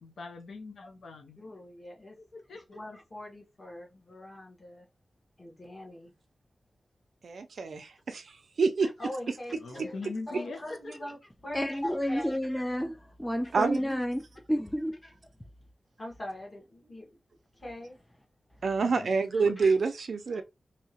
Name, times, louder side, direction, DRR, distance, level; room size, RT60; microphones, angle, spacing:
voice 1, 0.0-1.4 2.2-2.8 9.6-10.9 18.8-19.1 19.4-19.5, left 3 dB, 80° left, 0.6 m, -42 dB
voice 2, 1.4-2.2 2.5-4.9 5.4-6.1 8.8-10.0 10.3-12.7 16.0-17.1 17.6-18.0 19.3-19.7 20.3-20.4, left 1 dB, 30° left, 1.2 m, -42 dB
voice 3, 7.2-8.3 8.6-8.9 13.5-13.8 18.6-20.4, right 4 dB, 60° right, 0.4 m, -27 dB
voice 4, 11.5-14.2 14.5-15.0, equal, 5° left, 0.3 m, -30 dB
2.8 x 2.8 x 2.8 m
wide cardioid pair, 170°, 0 cm